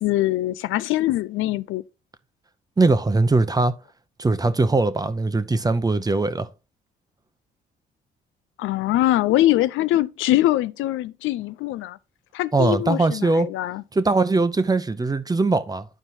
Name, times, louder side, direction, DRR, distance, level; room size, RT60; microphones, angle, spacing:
voice 1, 0.0-1.8 8.6-12.0 12.3-13.8, left 15 dB, 85° left, 0.4 m, -22 dB
voice 2, 2.8-3.7 4.2-6.5 12.5-13.5 13.9-15.9, right 3 dB, 20° right, 0.8 m, -21 dB
11.0 x 4.5 x 2.7 m
cardioid pair, 90°, 20 cm